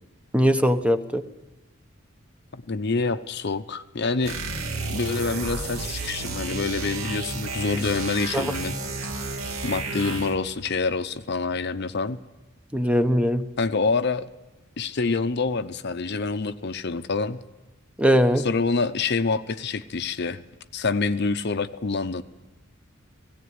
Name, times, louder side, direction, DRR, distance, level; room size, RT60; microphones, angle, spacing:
voice 1, 0.3-1.2 8.3-8.5 12.7-13.5 18.0-18.5, equal, 5° right, 8 dB, 0.9 m, -20 dB
voice 2, 2.5-4.4 4.9-8.7 9.6-12.2 13.6-14.3 14.8-17.4 18.4-20.4 20.7-22.2, left 4 dB, 55° left, 11 dB, 0.7 m, -26 dB
sound 1, 4.2-10.5, right 3 dB, 90° right, 2.3 m, -32 dB
17.5 x 17.0 x 9.5 m, 1.1 s
head